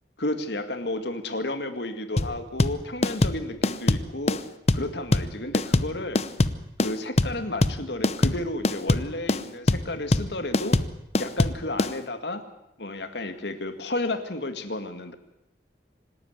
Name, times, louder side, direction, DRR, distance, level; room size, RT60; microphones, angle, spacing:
voice 1, 0.2-4.4 4.7-6.2 6.8-10.8 11.2-12.4 12.8-15.2, left 2 dB, 70° left, 8 dB, 2.1 m, -32 dB
sound 1, 2.2-11.9, left 2 dB, 35° left, 0.8 m, -23 dB
26.0 x 12.5 x 9.5 m, 0.88 s
head